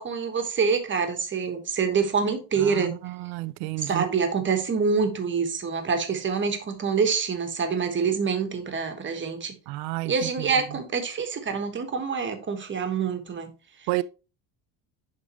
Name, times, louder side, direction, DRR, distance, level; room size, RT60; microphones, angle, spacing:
voice 1, 0.0-2.9 3.8-9.5 10.0-13.5, right 5 dB, 25° right, 1.2 m, -26 dB
voice 2, 2.7-4.0 9.7-10.1 13.9-14.0, right 20 dB, 85° right, 0.6 m, -30 dB
11.0 x 3.9 x 3.0 m
cardioid pair, 140°, 45 cm